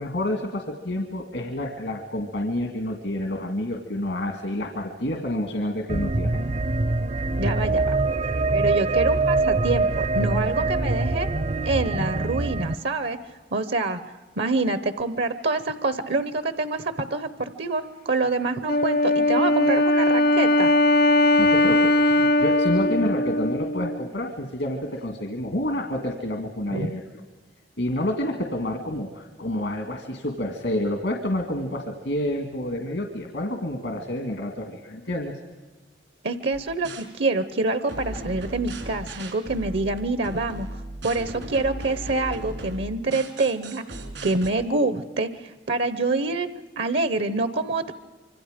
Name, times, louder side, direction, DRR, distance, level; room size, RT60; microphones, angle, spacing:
voice 1, 0.0-6.3 21.4-27.0 27.8-35.3, left 1 dB, 80° left, 3 dB, 2.0 m, -29 dB
sound 1, 5.9-12.7, right 3 dB, 45° right, 0.6 m, -24 dB
voice 2, 7.4-7.9 8.5-11.3 11.6-13.2 13.5-14.0 14.4-20.7 22.2-22.3 26.7-26.9 36.2-40.7 41.0-43.8 44.2-46.5 46.8-47.9, right 3 dB, 70° right, 12 dB, 0.9 m, -26 dB
Wind instrument woodwind instrument, 18.7-24.1, left 1 dB, 60° left, 0.8 m, -20 dB
sound 2, 36.5-37.1 37.9-44.5, right 1 dB, 85° right, 3.7 m, -37 dB
26.0 x 25.0 x 5.1 m, 1.2 s
head